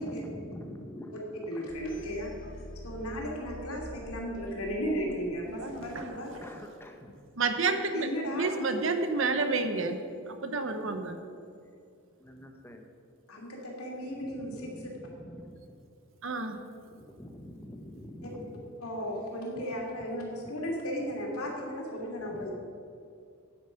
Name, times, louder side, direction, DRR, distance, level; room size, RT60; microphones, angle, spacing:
voice 1, 0.0-1.7 6.4-7.2 12.2-12.9 14.2-15.8 16.3-16.4 16.9-18.6 19.6-19.7 20.0-20.1 22.3-22.5, equal, 10° left, 3 dB, 0.9 m, -46 dB
voice 2, 1.5-2.3 2.8-6.3 7.9-8.5 13.3-14.7 18.8-22.5, equal, 80° left, -1 dB, 2.6 m, -35 dB
sound 1, 1.7-6.6, left 1 dB, 40° left, 0.7 m, -47 dB
voice 3, 5.5-6.4 7.4-10.0 10.3-11.2 16.2-16.6, right 3 dB, 60° right, 7 dB, 0.9 m, -30 dB
9.3 x 8.9 x 5.7 m, 2.3 s
head